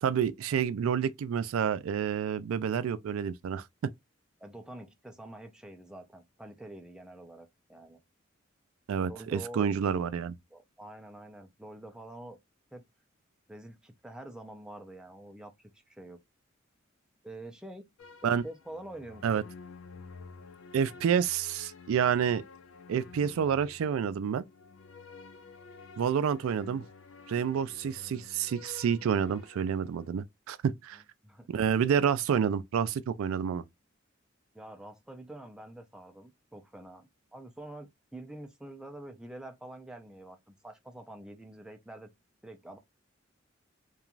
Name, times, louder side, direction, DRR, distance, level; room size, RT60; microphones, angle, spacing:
voice 1, 0.0-3.6 8.9-10.4 18.2-18.4 19.2-19.4 20.7-22.4 22.9-24.4 26.0-26.8 27.3-31.0 31.5-33.6, right 7 dB, 90° right, 0.3 m, -29 dB
voice 2, 4.4-8.0 9.1-9.8 10.5-12.4 12.7-12.8 13.5-16.2 17.2-17.9 18.2-19.4 31.2-31.5 34.5-42.1 42.4-42.8, right 1 dB, 5° right, 0.4 m, -46 dB
sound 1, 18.0-30.1, left 4 dB, 75° left, 0.4 m, -51 dB
2.9 x 2.3 x 2.4 m
head